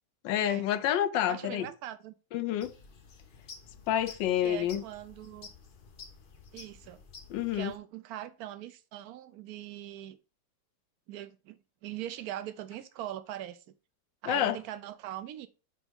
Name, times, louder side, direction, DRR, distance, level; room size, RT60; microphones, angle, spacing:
voice 1, 0.2-1.7 2.3-2.7 3.9-4.8 7.3-7.7 14.3-14.6, left 11 dB, 80° left, 1.4 m, -28 dB
voice 2, 1.3-2.1 4.4-5.5 6.5-7.0 7.5-10.2 11.1-13.7 14.2-15.5, right 12 dB, 65° right, 1.0 m, -41 dB
sound 1, 2.6-7.8, left 5 dB, 65° left, 0.5 m, -51 dB
9.1 x 3.5 x 3.5 m
omnidirectional pair, 1.9 m